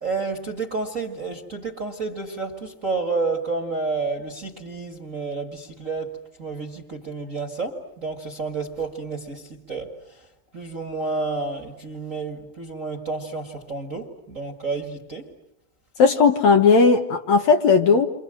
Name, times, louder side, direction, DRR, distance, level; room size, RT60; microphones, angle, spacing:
voice 1, 0.0-9.9 10.5-15.3, right 3 dB, 30° right, 5 dB, 1.7 m, -30 dB
voice 2, 16.0-18.1, left 5 dB, 60° left, 5 dB, 2.2 m, -16 dB
30.0 x 25.5 x 7.8 m, 0.84 s
omnidirectional pair, 4.1 m